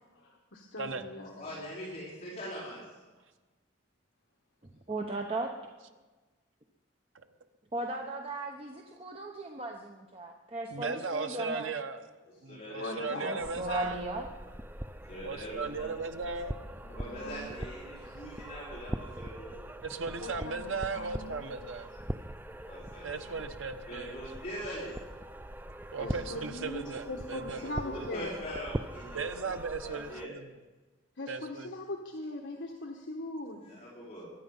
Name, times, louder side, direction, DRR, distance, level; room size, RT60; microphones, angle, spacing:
voice 1, 0.0-1.3 12.8-13.4 13.7-13.9 16.8-17.7 18.0-18.2 20.2-21.5 26.0-28.4 31.2-33.6, left 1 dB, 65° left, 1 dB, 1.3 m, -41 dB
voice 2, 1.2-2.8 12.5-13.2 15.1-15.9 16.9-19.6 22.6-23.4 23.9-25.0 27.5-29.5 29.8-30.3 33.6-34.3, equal, 35° left, -9 dB, 4.8 m, -42 dB
voice 3, 4.9-5.5 7.7-11.7 13.2-14.3, right 2 dB, 30° right, 2 dB, 1.0 m, -36 dB
voice 4, 10.7-12.0 12.4-14.0 15.2-16.6 19.8-21.9 23.0-24.2 25.9-27.7 29.1-30.5 31.3-31.7, right 4 dB, 75° right, 8 dB, 1.1 m, -37 dB
sound 1, 13.4-30.3, right 1 dB, 10° right, 0.4 m, -42 dB
23.0 x 10.0 x 5.5 m, 1.3 s
head